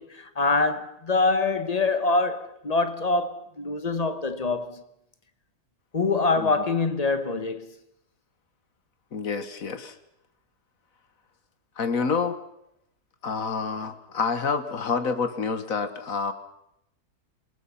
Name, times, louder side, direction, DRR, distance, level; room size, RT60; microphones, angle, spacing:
voice 1, 0.0-4.8 5.9-7.7, left 3 dB, 25° left, 1.1 m, -25 dB
voice 2, 9.1-9.9 11.8-12.4 13.2-16.3, left 5 dB, 55° left, 1.7 m, -28 dB
27.0 x 18.5 x 5.7 m
omnidirectional pair, 1.9 m